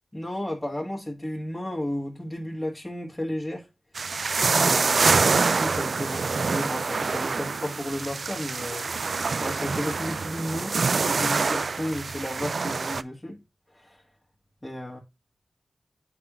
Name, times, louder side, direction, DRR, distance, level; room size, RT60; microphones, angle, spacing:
voice 1, 0.1-3.7 4.6-8.9 9.4-10.8 11.0-13.4 13.7-14.0 14.6-15.0, left 1 dB, 10° left, 1.6 m, -33 dB
sound 1, 4.0-13.0, right 4 dB, 70° right, 0.3 m, -25 dB
8.7 x 4.9 x 2.5 m
cardioid pair, 60°, 0 cm